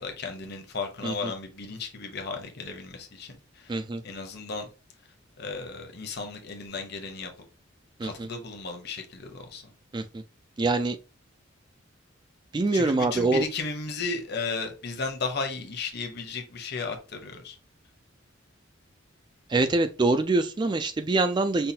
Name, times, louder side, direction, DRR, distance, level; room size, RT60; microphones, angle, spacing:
voice 1, 0.0-4.7 5.4-7.3 8.0-9.7 12.7-17.6, left 4 dB, 55° left, 1.0 m, -35 dB
voice 2, 3.7-4.0 8.0-8.3 9.9-10.2 10.6-11.0 12.5-13.4 19.5-21.7, right 3 dB, 20° right, 0.3 m, -25 dB
5.5 x 2.4 x 2.8 m
head